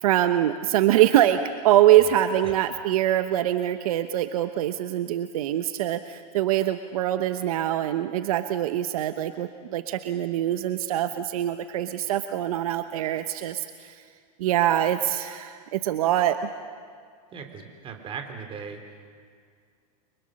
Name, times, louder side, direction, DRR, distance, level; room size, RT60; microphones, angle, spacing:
voice 1, 0.0-14.0 14.4-16.5, right 12 dB, 70° right, 9 dB, 1.0 m, -24 dB
voice 2, 17.3-19.2, right 6 dB, 30° right, 5 dB, 3.6 m, -39 dB
30.0 x 24.5 x 6.5 m, 2.1 s
supercardioid pair, 130°, 19 cm